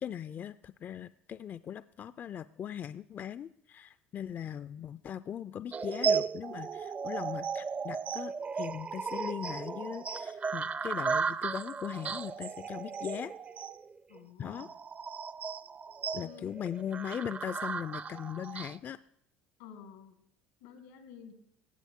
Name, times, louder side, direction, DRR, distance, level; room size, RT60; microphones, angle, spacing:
voice 1, 0.0-13.3 14.4-14.7 16.1-19.0, left 9 dB, 40° left, 14 dB, 0.3 m, -39 dB
sound 1, 5.7-18.8, right 5 dB, 30° right, 0.4 m, -35 dB
voice 2, 14.1-14.7 16.2-16.5 19.6-20.2 20.6-21.3, left 8 dB, 90° left, 9 dB, 1.5 m, -51 dB
16.5 x 7.1 x 3.6 m, 0.70 s
supercardioid pair, 85°, 5 cm